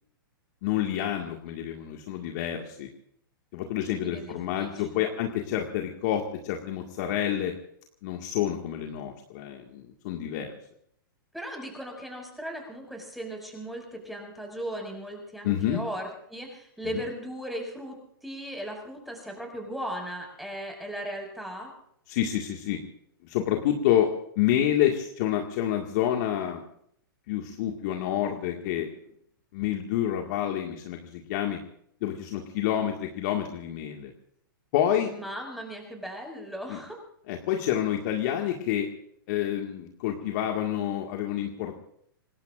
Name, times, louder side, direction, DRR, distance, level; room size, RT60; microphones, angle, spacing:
voice 1, 0.6-2.9 3.5-7.5 8.0-10.5 15.4-15.8 22.1-22.8 23.2-24.1 24.4-26.6 27.3-28.9 29.5-31.6 32.0-34.1 34.7-35.1 36.7-36.8 37.3-38.9 39.3-41.7, left 11 dB, 50° left, 2 dB, 2.0 m, -28 dB
voice 2, 4.0-5.1 11.3-21.7 35.1-37.0, equal, ahead, 1 dB, 6.0 m, -37 dB
26.5 x 20.0 x 2.6 m, 0.68 s
hypercardioid pair, 125°, 12 cm